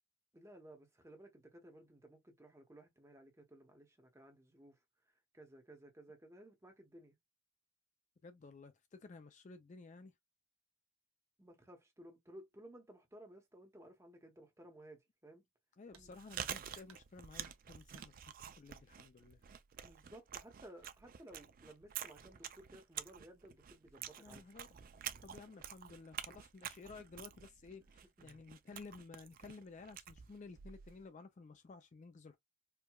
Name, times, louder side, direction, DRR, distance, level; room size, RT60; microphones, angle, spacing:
voice 1, 0.3-4.8 5.3-7.2 11.4-15.5 15.9-16.1 19.8-24.5 28.2-28.4, right 1 dB, 15° right, 0.8 m, -57 dB
voice 2, 8.2-10.1 15.8-19.4 24.2-24.7 25.2-32.4, left 4 dB, 35° left, 0.3 m, -54 dB
Chewing mastication, 15.9-31.0, right 9 dB, 40° right, 0.3 m, -49 dB
sound 1, 15.9-16.1 16.4-17.1 17.4-18.1 19.3-19.4 19.9-20.0 20.7-21.1 21.5-21.9, right 6 dB, 70° right, 0.9 m, -64 dB
4.5 x 2.2 x 2.2 m
head